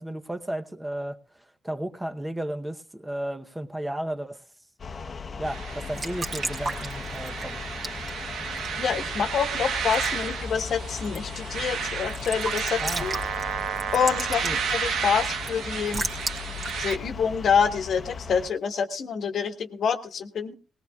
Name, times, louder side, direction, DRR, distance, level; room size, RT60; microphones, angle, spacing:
voice 1, 0.0-4.4 5.4-7.6 12.8-13.1 14.4-14.6, right 1 dB, 10° right, 8 dB, 0.8 m, -34 dB
sound 1, 4.8-18.5, left 5 dB, 40° left, 0.9 m, -38 dB
sound 2, 5.4-17.0, right 7 dB, 80° right, 1.1 m, -32 dB
Raindrop / Drip / Trickle dribble, 5.7-18.2, right 3 dB, 40° right, 1.9 m, -38 dB
voice 2, 8.8-13.2 13.9-16.0 16.8-20.5, left 7 dB, 60° left, 9 dB, 1.2 m, -27 dB
19.0 x 18.0 x 2.4 m, 0.36 s
cardioid pair, 90°, 0 cm